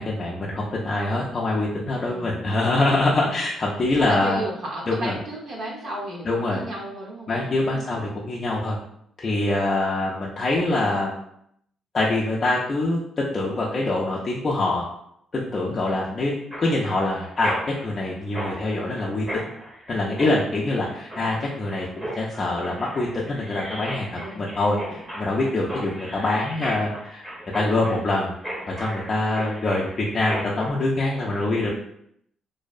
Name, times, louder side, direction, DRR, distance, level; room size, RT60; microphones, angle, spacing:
voice 1, 0.0-4.4 4.9-5.1 6.3-6.6 7.3-8.8 9.2-11.2 11.9-14.8 15.3-16.3 16.6-17.6 17.8-19.5 19.9-27.2 27.5-28.3 28.7-31.7, left 2 dB, 40° left, -4 dB, 0.4 m, -24 dB
voice 2, 3.1-3.4 4.0-8.1 24.1-24.5, right 1 dB, 65° right, -3 dB, 0.6 m, -34 dB
Mechanisms, 16.5-30.7, equal, 20° right, 0.9 m, -36 dB
2.5 x 2.0 x 2.3 m, 0.71 s
cardioid pair, 90°, 0 cm